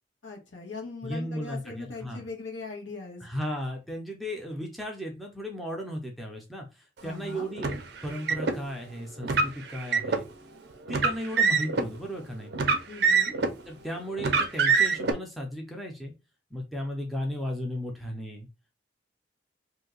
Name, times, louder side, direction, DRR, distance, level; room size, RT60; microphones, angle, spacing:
voice 1, 0.2-3.2 7.0-7.5 12.9-13.4, left 3 dB, 80° left, 0 dB, 1.2 m, -40 dB
voice 2, 1.0-2.3 3.2-6.7 7.0-7.8 8.0-10.3 10.9-12.5 13.7-16.1 16.5-18.5, equal, ahead, 0 dB, 0.5 m, -35 dB
Car, 7.6-8.6 9.2-10.2 10.9-11.9 12.5-13.6 14.2-15.1, right 5 dB, 60° right, 0.4 m, -25 dB
2.7 x 2.2 x 3.7 m, 0.27 s
head